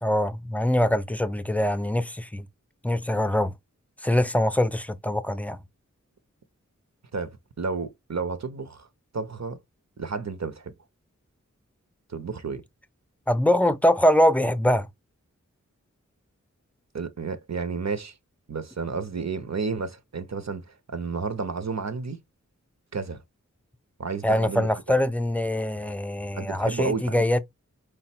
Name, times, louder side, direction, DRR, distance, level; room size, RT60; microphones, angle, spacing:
voice 1, 0.0-2.5 2.8-3.5 4.0-5.6 13.3-14.9 24.2-27.4, left 1 dB, 5° left, 0.5 m, -23 dB
voice 2, 7.1-8.9 9.1-9.6 10.0-10.7 12.1-12.6 16.9-18.2 18.5-22.2 22.9-23.2 24.0-24.7 26.4-27.4, right 4 dB, 60° right, 0.7 m, -31 dB
4.8 x 2.1 x 4.2 m
wide cardioid pair, 50°, 31 cm